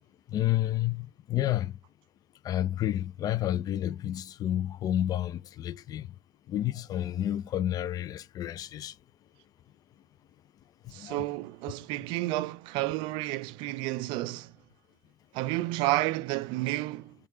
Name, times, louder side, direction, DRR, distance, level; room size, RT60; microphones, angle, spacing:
voice 1, 0.3-1.7 2.4-6.1 6.5-8.9 11.0-11.2, left 12 dB, 40° left, 0.3 m, -30 dB
voice 2, 10.9-14.5 15.3-17.1, right 18 dB, 55° right, 0.3 m, -31 dB
6.2 x 2.3 x 3.0 m
figure-of-eight pair, 60°, 10 cm